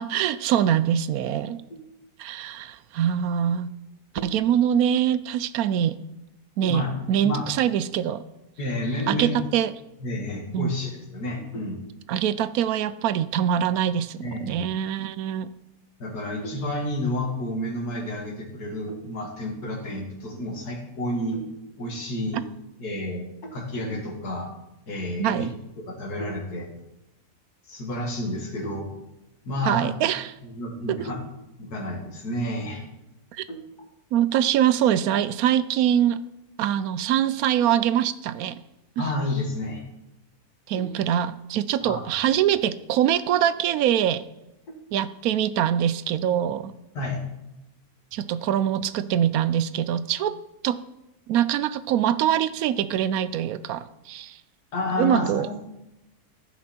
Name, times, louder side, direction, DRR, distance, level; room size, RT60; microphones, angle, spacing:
voice 1, 0.0-1.6 2.2-3.7 4.2-6.0 6.6-8.2 9.1-9.7 10.5-10.7 12.1-15.5 25.2-25.5 29.6-30.3 30.9-31.0 33.3-33.4 34.1-36.2 36.6-38.6 39.0-39.1 40.7-44.2 44.9-46.7 48.1-50.3 50.6-50.8 51.3-54.4 55.0-55.5, right 10 dB, 75° right, 15 dB, 1.0 m, -23 dB
voice 2, 6.6-6.9 7.2-7.5 8.6-9.4 10.0-11.8 14.2-14.7 16.0-21.4 21.8-22.4 22.8-24.5 24.9-25.5 25.8-26.7 27.7-28.9 29.4-29.9 30.4-31.2 31.6-32.8 33.5-33.6 39.0-39.8 40.8-40.9 41.8-42.1 46.9-47.2 54.7-55.6, left 1 dB, 75° left, 1 dB, 2.5 m, -30 dB
14.0 x 6.1 x 4.3 m, 0.90 s
omnidirectional pair, 1.7 m